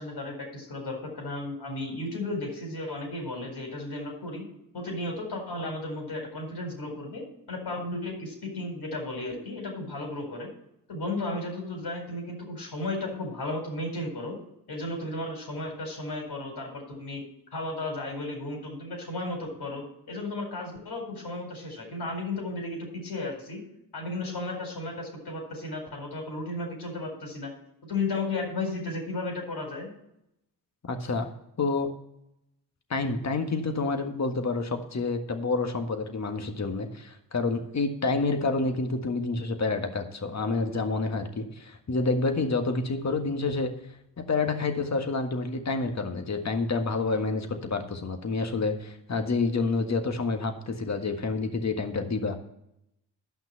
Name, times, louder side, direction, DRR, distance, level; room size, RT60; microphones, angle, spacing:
voice 1, 0.0-4.4 4.7-10.5 10.9-14.4 14.7-17.2 17.5-23.6 23.9-27.5 27.8-29.9, left 2 dB, 55° left, 2 dB, 4.5 m, -34 dB
voice 2, 30.9-31.3 31.6-31.9 32.9-43.7 44.2-52.4, left 3 dB, 35° left, 6 dB, 1.6 m, -28 dB
12.0 x 5.9 x 5.6 m, 0.82 s
hypercardioid pair, 45°, 46 cm